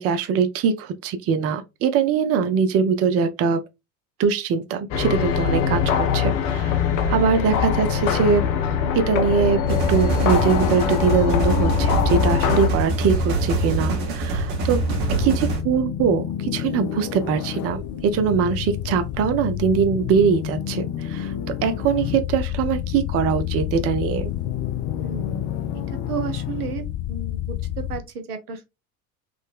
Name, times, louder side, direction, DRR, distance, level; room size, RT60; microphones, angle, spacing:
voice 1, 0.0-3.6 4.2-6.7 7.1-8.4 8.9-9.6 9.9-14.8 15.2-21.3 21.6-24.3, right 6 dB, 35° right, 0.5 m, -22 dB
sound 1, 4.9-12.7, left 7 dB, 60° left, 0.7 m, -22 dB
sound 2, 9.7-15.6, right 2 dB, 50° right, 1.1 m, -24 dB
sound 3, 14.3-28.0, left 11 dB, 40° left, 0.4 m, -29 dB
voice 2, 25.0-25.5 26.1-26.8 27.1-28.7, right 6 dB, 85° right, 0.7 m, -32 dB
3.8 x 2.1 x 2.3 m
hypercardioid pair, 75°, 45 cm